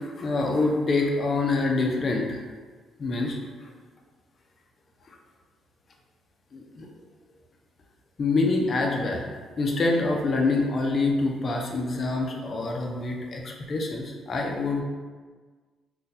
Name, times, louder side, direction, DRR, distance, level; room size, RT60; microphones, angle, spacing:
voice 1, 0.0-2.4 3.0-3.4 6.5-6.9 8.2-9.2 9.6-14.8, left 3 dB, 45° left, 1 dB, 0.5 m, -26 dB
2.6 x 2.3 x 4.0 m, 1.5 s
cardioid pair, 90°, 0 cm